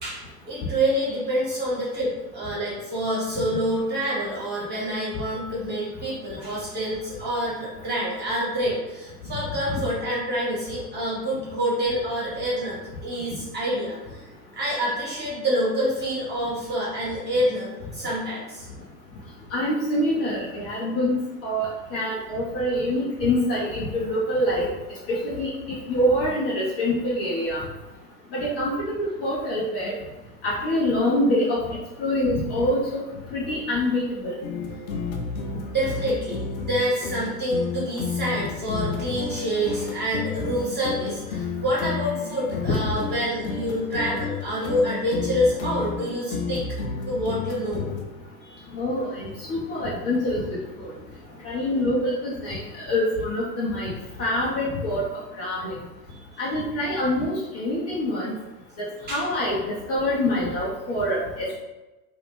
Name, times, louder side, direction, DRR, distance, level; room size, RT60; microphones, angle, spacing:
voice 1, 0.0-14.2 14.5-18.7 35.6-46.6 47.1-47.8 48.4-48.6 56.1-56.4 59.1-59.2, equal, 20° right, -7 dB, 1.4 m, -27 dB
voice 2, 19.5-21.1 21.4-24.7 25.1-27.6 28.3-29.9 30.4-33.0 33.3-34.3 42.6-42.9 48.7-50.9 51.4-52.6 52.9-53.9 54.2-55.1 55.4-55.8 56.4-58.3 58.8-59.6 59.9-61.6, left 1 dB, 30° left, -7 dB, 0.8 m, -25 dB
sound 1, 34.4-48.0, left 5 dB, 60° left, 0.6 m, -32 dB
2.5 x 2.4 x 3.5 m, 1.0 s
figure-of-eight pair, 90°, 48 cm